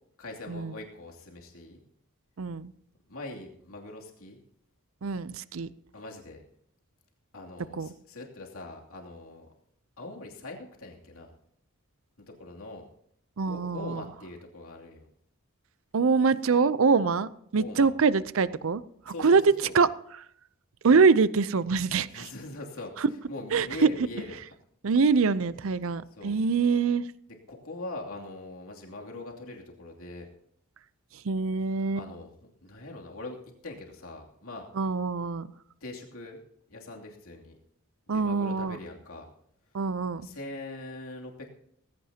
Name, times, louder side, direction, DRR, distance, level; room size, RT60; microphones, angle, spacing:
voice 1, 0.2-1.8 3.1-4.4 5.9-6.4 7.3-9.5 10.0-11.3 12.3-12.9 13.4-15.1 17.6-17.9 19.0-19.8 22.1-22.9 23.3-24.4 26.1-26.4 27.5-30.3 31.9-32.3 32.6-34.7 35.8-36.4 36.7-37.6 38.1-39.3 40.2-41.5, left 2 dB, 75° left, 0 dB, 2.8 m, -42 dB
voice 2, 2.4-2.7 5.0-5.7 7.7-7.9 13.4-14.0 15.9-19.4 19.7-19.9 20.8-22.3 23.0-23.1 23.5-23.9 24.8-27.1 31.2-32.0 34.8-35.5 38.1-38.8 39.7-40.3, right 5 dB, 65° right, 16 dB, 0.6 m, -24 dB
18.5 x 16.0 x 2.9 m, 0.69 s
head